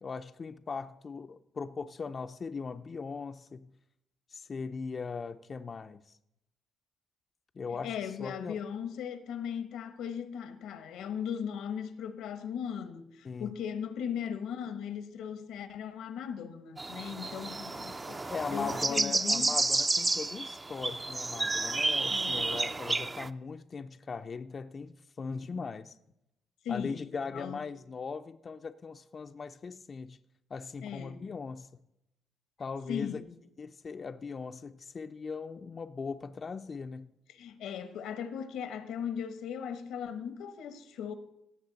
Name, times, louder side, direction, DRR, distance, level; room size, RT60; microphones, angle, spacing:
voice 1, 0.0-3.7 4.3-6.2 7.6-8.6 13.2-13.5 18.3-26.0 26.7-30.2 30.5-31.7 32.6-33.2 33.6-37.1, left 5 dB, 40° left, 0.4 m, -39 dB
voice 2, 7.8-19.5 22.1-22.6 26.6-27.6 30.8-31.2 32.9-33.3 37.3-41.1, left 8 dB, 85° left, 1.0 m, -38 dB
sound 1, 16.8-23.3, right 3 dB, 25° right, 0.4 m, -31 dB
17.0 x 6.9 x 4.0 m
cardioid pair, 90°, 0 cm